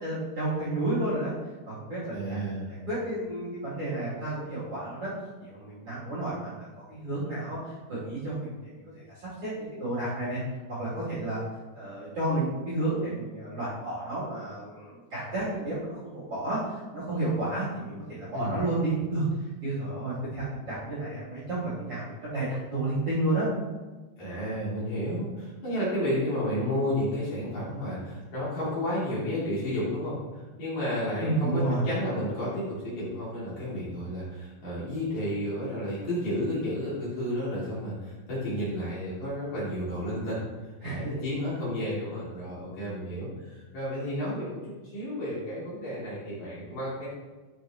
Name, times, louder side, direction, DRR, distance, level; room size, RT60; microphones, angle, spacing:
voice 1, 0.0-1.3 1.6-2.4 2.7-5.1 5.4-10.4 10.8-11.4 11.7-19.2 19.6-23.5 31.2-31.8 40.8-41.1 41.9-42.0, right 2 dB, 35° right, -9 dB, 3.2 m, -31 dB
voice 2, 2.1-2.7 18.3-18.6 24.2-40.4 40.8-47.1, equal, 45° left, -10 dB, 4.1 m, -32 dB
12.5 x 6.6 x 3.0 m, 1.3 s
omnidirectional pair, 5.3 m